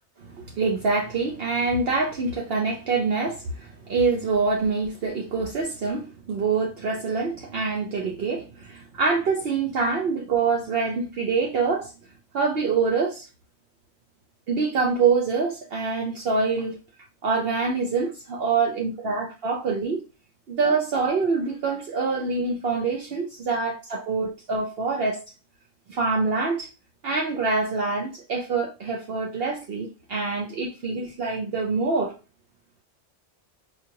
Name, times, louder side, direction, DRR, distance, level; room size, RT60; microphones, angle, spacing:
voice 1, 0.3-11.9 12.3-13.2 14.5-16.8 17.2-20.0 20.5-25.2 25.9-26.7 27.0-32.1, right 4 dB, 65° right, 0.9 m, -25 dB
4.4 x 2.4 x 2.8 m
omnidirectional pair, 1.2 m